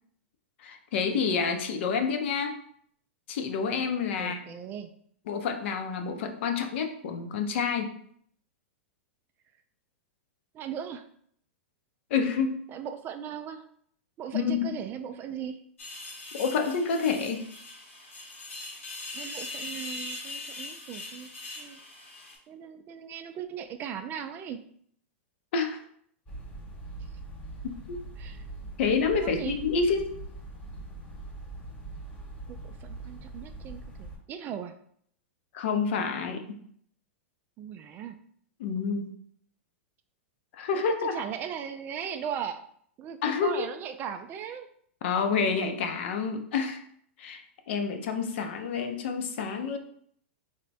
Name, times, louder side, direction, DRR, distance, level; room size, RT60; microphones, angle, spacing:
voice 1, 0.6-2.6 3.3-4.6 5.3-7.9 12.1-12.6 14.3-14.8 16.4-17.5 25.5-25.8 27.6-28.0 28.8-30.2 35.5-36.6 38.6-39.2 40.5-41.2 43.2-43.7 45.0-46.8 47.2-49.8, left 5 dB, 65° left, 6 dB, 0.6 m, -28 dB
voice 2, 4.2-4.9 10.5-11.0 12.7-13.6 14.2-15.6 19.1-21.3 21.6-21.8 22.5-24.6 28.2-28.4 29.2-29.6 32.5-34.7 37.6-38.2 41.1-42.6 43.0-44.7, right 8 dB, 30° right, 8 dB, 0.3 m, -38 dB
sound 1, 15.8-22.4, left 2 dB, 90° left, 1.1 m, -41 dB
sound 2, 26.3-34.2, right 2 dB, 20° left, 1.1 m, -42 dB
3.4 x 2.1 x 4.0 m, 0.63 s
hypercardioid pair, 120°, 7 cm